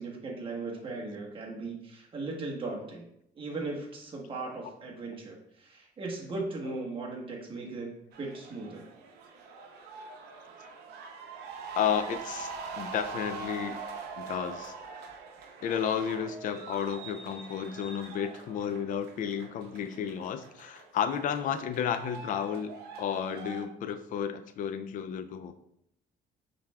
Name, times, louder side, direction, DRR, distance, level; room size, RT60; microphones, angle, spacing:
voice 1, 0.0-3.1 3.3-8.8, right 3 dB, 30° right, -2 dB, 1.2 m, -38 dB
sound 1, 8.1-23.7, right 4 dB, 75° right, 0.7 m, -43 dB
voice 2, 11.7-12.5 12.8-13.8 14.2-14.7 15.6-25.5, left 8 dB, 50° left, 9 dB, 0.4 m, -32 dB
5.8 x 3.3 x 2.3 m, 0.74 s
cardioid pair, 110°, 17 cm